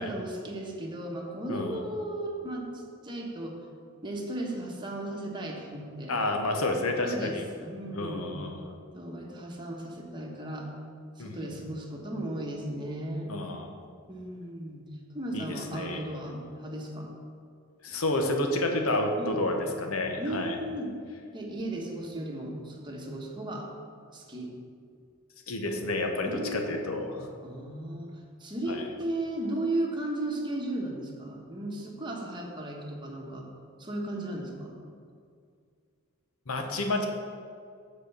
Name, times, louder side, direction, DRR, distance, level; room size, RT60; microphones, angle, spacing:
voice 1, 0.0-3.6 4.0-6.2 7.0-8.3 8.9-10.7 11.2-13.3 14.1-14.8 15.1-17.1 17.9-18.0 19.2-19.5 20.2-20.9 21.3-23.7 24.1-24.5 26.2-26.8 27.4-33.5 33.8-34.8, right 1 dB, 20° right, 0 dB, 1.1 m, -35 dB
voice 2, 1.5-1.8 6.1-7.4 7.9-8.6 11.2-11.5 13.3-13.7 15.3-16.0 17.8-20.6 25.5-27.3 28.7-28.8 36.5-37.1, left 2 dB, 90° left, 3 dB, 1.0 m, -30 dB
7.7 x 4.4 x 6.7 m, 2.2 s
head